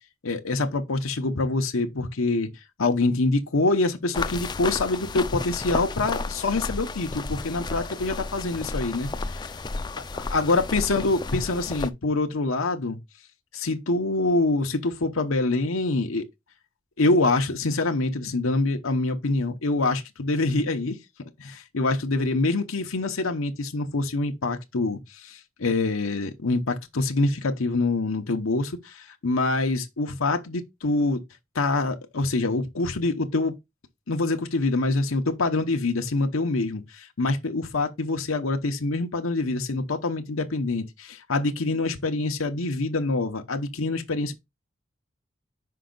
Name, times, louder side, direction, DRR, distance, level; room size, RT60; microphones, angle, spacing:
voice 1, 0.2-2.5 2.8-9.5 10.1-13.0 13.5-16.3 17.0-21.0 21.4-31.2 31.5-33.5 34.1-44.3, left 2 dB, 90° left, 0.9 m, -25 dB
sound 1, 4.1-11.9, left 3 dB, 20° left, 0.3 m, -32 dB
5.7 x 5.2 x 3.9 m
head